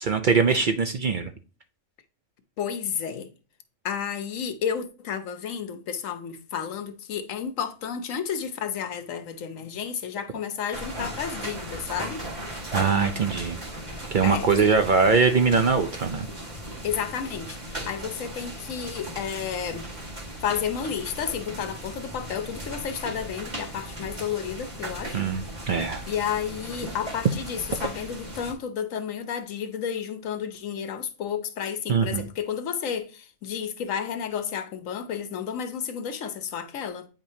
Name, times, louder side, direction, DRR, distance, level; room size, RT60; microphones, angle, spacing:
voice 1, 0.0-1.3 12.7-13.6 14.1-16.3 25.1-26.0 31.9-32.3, right 5 dB, 55° right, 0.6 m, -22 dB
voice 2, 2.6-3.3 3.8-12.2 14.2-14.5 16.8-19.9 20.4-25.2 26.1-37.1, left 8 dB, 90° left, 1.2 m, -31 dB
sound 1, 10.7-28.5, right 1 dB, 35° right, 1.9 m, -37 dB
8.9 x 5.0 x 2.7 m
omnidirectional pair, 1.3 m